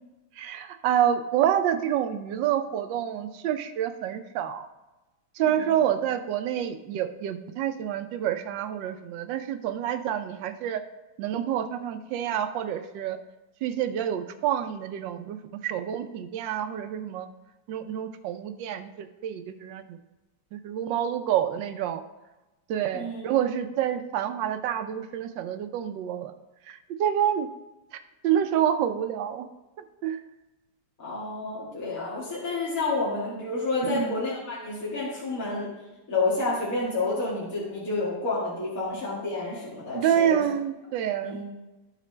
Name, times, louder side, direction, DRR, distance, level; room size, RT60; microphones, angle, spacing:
voice 1, 0.4-4.7 5.4-10.8 11.2-13.2 13.6-15.4 15.6-17.3 17.7-20.0 20.5-22.0 22.7-26.3 26.7-27.5 28.2-29.5 30.0-30.2 33.8-34.1 39.9-41.4, right 10 dB, 80° right, 9 dB, 1.3 m, -28 dB
voice 2, 5.4-5.7 22.9-23.2 31.0-35.7 36.1-40.4 41.2-41.4, left 3 dB, 50° left, -7 dB, 2.2 m, -29 dB
13.0 x 5.1 x 3.2 m, 1.1 s
omnidirectional pair, 2.0 m